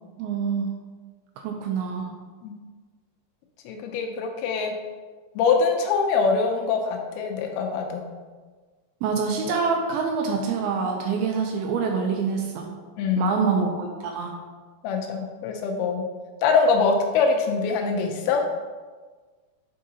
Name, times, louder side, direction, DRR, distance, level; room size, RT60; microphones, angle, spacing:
voice 1, 0.2-0.7 1.4-2.1 9.0-12.7 13.2-14.3, right 5 dB, 80° right, 2 dB, 2.3 m, -26 dB
voice 2, 3.7-4.7 5.4-8.0 13.0-13.4 14.8-16.1 16.4-18.4, left 5 dB, 80° left, 3 dB, 2.5 m, -23 dB
7.4 x 4.6 x 2.8 m, 1.4 s
omnidirectional pair, 4.6 m